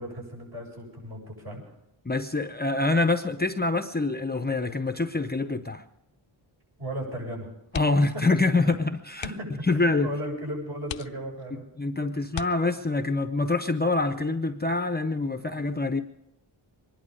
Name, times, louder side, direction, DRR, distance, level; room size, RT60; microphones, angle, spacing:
voice 1, 0.0-1.6 6.8-7.8 8.6-8.7 9.2-11.7, equal, 50° right, -2 dB, 7.8 m, -36 dB
voice 2, 2.0-5.8 7.7-9.3 9.7-10.1 11.5-16.0, left 3 dB, 20° left, 8 dB, 0.7 m, -25 dB
sound 1, 7.7-8.2 8.5-8.7 9.1-9.6 10.2-10.3 10.8-11.6 12.3-13.1 14.6-15.0 15.3-15.4, left 11 dB, 70° left, 0.7 m, -39 dB
24.0 x 11.0 x 5.3 m, 0.82 s
wide cardioid pair, 105°, 48 cm